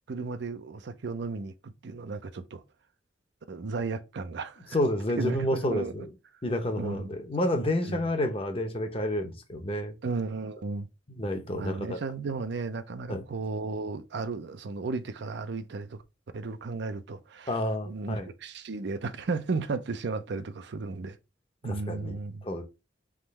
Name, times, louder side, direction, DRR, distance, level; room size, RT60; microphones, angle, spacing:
voice 1, 0.1-2.6 3.5-4.8 5.2-6.1 6.8-7.1 7.8-8.0 10.0-10.9 11.5-16.0 16.3-17.6 17.9-21.2 21.6-22.5, right 3 dB, 65° right, 0.5 m, -34 dB
voice 2, 4.7-6.1 6.4-9.9 11.2-12.0 13.1-13.2 17.5-18.3 21.6-22.1 22.4-22.6, left 1 dB, 30° left, 0.8 m, -29 dB
3.7 x 3.0 x 4.3 m
head